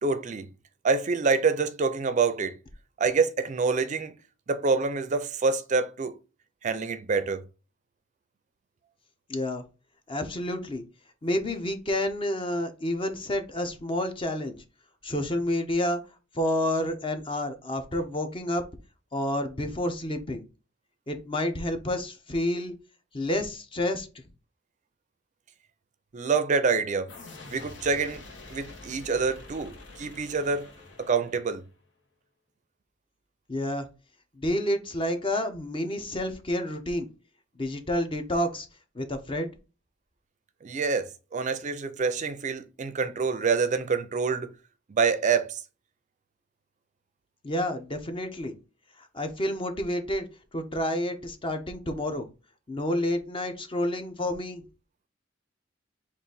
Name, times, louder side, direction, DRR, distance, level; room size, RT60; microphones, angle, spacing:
voice 1, 0.0-0.5 0.8-2.6 3.0-4.1 4.5-6.2 6.6-7.4 26.1-27.1 27.5-28.2 28.5-30.7 31.0-31.6 40.6-44.5 44.9-45.6, right 4 dB, 40° right, 0.4 m, -26 dB
voice 2, 9.3-9.6 10.1-10.8 11.2-14.6 15.0-16.0 16.3-18.6 19.1-20.4 21.1-22.7 23.1-24.1 33.5-33.9 34.4-37.1 37.6-38.7 38.9-39.5 47.4-48.5 49.1-50.3 50.5-52.3 52.7-54.6, left 1 dB, 30° left, 0.7 m, -29 dB
sound 1, 27.1-31.7, left 2 dB, 80° left, 1.1 m, -46 dB
3.8 x 2.5 x 3.9 m
head